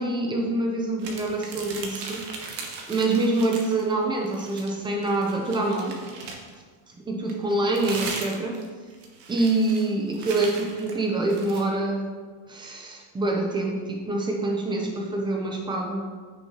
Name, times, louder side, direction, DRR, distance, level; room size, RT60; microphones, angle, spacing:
voice 1, 0.0-2.2 2.9-6.0 7.1-8.6 9.3-12.1 12.5-16.1, right 2 dB, 10° right, 0 dB, 0.4 m, -26 dB
sound 1, 1.0-3.9 4.2-6.6 7.3-11.7, right 4 dB, 55° right, 1.3 m, -38 dB
9.3 x 6.1 x 2.8 m, 1.5 s
cardioid pair, 175°, 50 cm